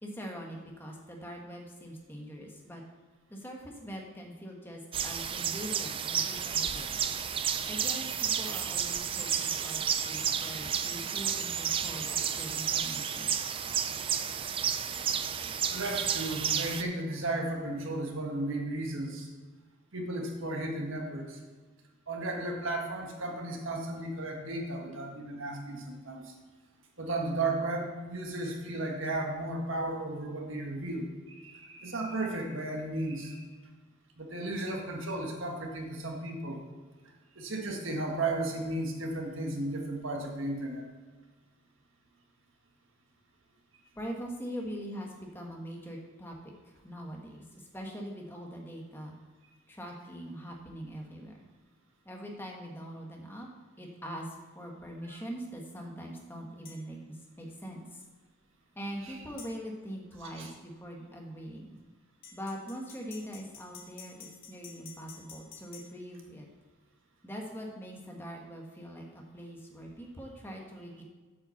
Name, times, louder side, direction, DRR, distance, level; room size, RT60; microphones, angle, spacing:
voice 1, 0.0-2.8 3.3-7.0 7.6-13.3 44.0-49.1 49.7-51.5 52.0-53.5 53.8-58.0 58.7-61.8 62.3-66.5 67.2-71.0, equal, 10° left, 0 dB, 1.2 m, -42 dB
sound 1, 4.9-16.8, right 8 dB, 25° right, 0.3 m, -31 dB
voice 2, 15.7-19.3 19.9-21.4 22.1-26.3 27.0-33.4 34.2-36.6 37.3-40.8 60.2-60.5, right 2 dB, 70° right, 1 dB, 1.6 m, -34 dB
sound 2, 56.6-56.8 59.4-59.5 62.2-65.9, left 5 dB, 45° left, 2.0 m, -49 dB
8.3 x 5.7 x 7.0 m, 1.4 s
head